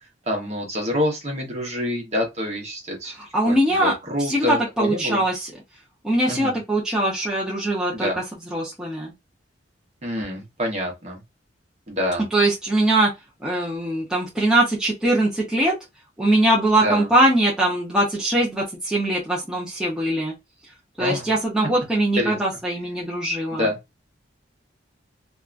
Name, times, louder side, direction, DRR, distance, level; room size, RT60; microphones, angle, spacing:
voice 1, 0.3-3.2 3.5-5.2 6.3-6.6 7.9-8.2 10.0-11.2 11.9-12.3 16.8-17.1 21.0-21.3 22.2-22.4 23.5-23.8, left 1 dB, 35° right, 0.9 m, -26 dB
voice 2, 3.3-3.9 4.2-5.5 6.0-8.1 8.5-9.1 12.3-13.1 13.4-15.7 16.2-20.3 21.0-23.7, right 1 dB, 5° right, 0.6 m, -21 dB
2.7 x 2.3 x 2.4 m
head